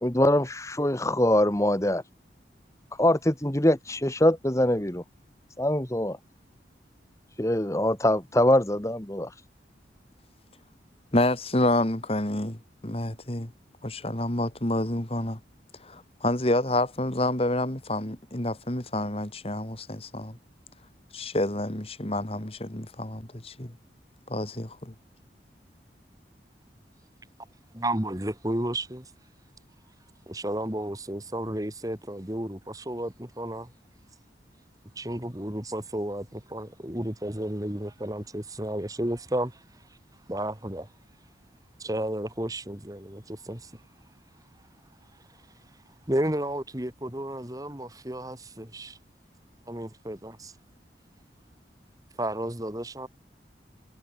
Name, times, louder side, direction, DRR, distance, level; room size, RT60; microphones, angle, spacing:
voice 1, 0.0-2.0 3.0-5.0 5.6-6.2 7.4-9.3, left 1 dB, 15° left, 1.4 m, -23 dB
voice 2, 11.1-13.5 13.8-15.4 15.8-20.4 21.1-23.8 24.3-24.9, left 1 dB, 35° left, 2.1 m, -28 dB
voice 3, 27.7-29.1 30.3-33.7 35.0-36.2 36.5-39.6 40.3-40.9 41.8-43.7 46.1-49.0 49.7-50.5 52.2-53.1, right 1 dB, 20° right, 2.3 m, -32 dB
head